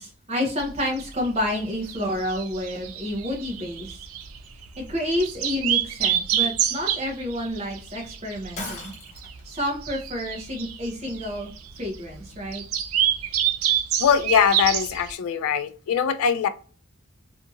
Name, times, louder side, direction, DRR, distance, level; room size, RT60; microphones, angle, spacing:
voice 1, 0.0-4.0 4.8-8.9 9.5-11.5 11.8-12.6, left 1 dB, 30° right, 0.7 m, -29 dB
sound 1, 0.6-15.1, right 10 dB, 80° right, 0.4 m, -28 dB
Shatter, 8.6-9.4, left 2 dB, 35° left, 0.6 m, -36 dB
voice 2, 14.0-16.5, left 7 dB, 80° left, 0.3 m, -22 dB
2.7 x 2.4 x 2.6 m
head